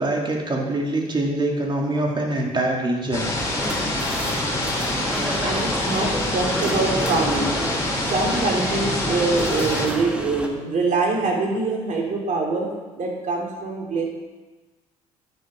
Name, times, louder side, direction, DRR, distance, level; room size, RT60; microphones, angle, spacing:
voice 1, 0.0-3.3 5.1-5.4 5.7-5.9, right 1 dB, 30° right, 0 dB, 2.7 m, -24 dB
sound 1, 3.1-9.9, left 1 dB, 15° left, 3.6 m, -26 dB
sound 2, 3.4-10.5, equal, 5° right, 1.6 m, -29 dB
voice 2, 5.4-7.5 8.0-12.7 13.0-14.0, right 3 dB, 50° right, -1 dB, 3.2 m, -24 dB
10.5 x 6.5 x 5.4 m, 1.2 s
hypercardioid pair, 65°, 17 cm